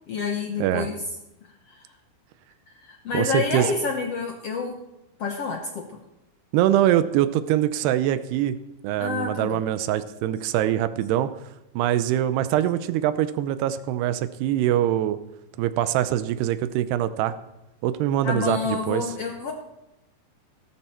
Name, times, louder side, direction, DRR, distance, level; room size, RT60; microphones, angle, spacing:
voice 1, 0.1-1.0 1.7-1.8 2.7-4.8 5.2-6.0 9.0-9.6 18.2-19.5, left 4 dB, 80° left, 3 dB, 1.3 m, -28 dB
voice 2, 0.6-0.9 3.1-3.7 6.5-8.6 8.8-11.3 11.8-15.2 15.6-17.4 17.8-19.1, right 12 dB, 90° right, 12 dB, 2.8 m, -23 dB
17.5 x 13.5 x 4.4 m, 0.93 s
omnidirectional pair, 4.6 m